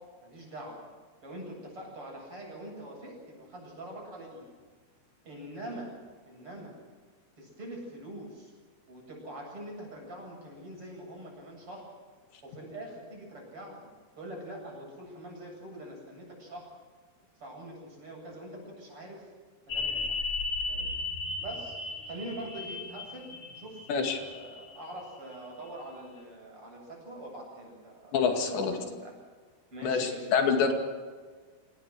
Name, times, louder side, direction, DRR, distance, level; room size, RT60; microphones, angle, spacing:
voice 1, 0.2-0.8 1.2-4.5 5.2-5.9 6.3-6.8 7.4-8.5 8.9-11.9 12.4-16.7 17.4-19.3 19.7-20.0 20.7-20.9 21.4-21.8 22.1-29.1 29.7-30.4 30.7-30.8, right 1 dB, 30° right, -1 dB, 9.0 m, -44 dB
sound 1, 19.7-25.0 25.3-25.4, left 3 dB, 45° left, 3.5 m, -35 dB
voice 2, 23.9-24.2 28.1-28.7 29.8-30.7, left 6 dB, 90° left, 4 dB, 4.6 m, -26 dB
26.5 x 19.0 x 6.6 m, 1.5 s
omnidirectional pair, 4.9 m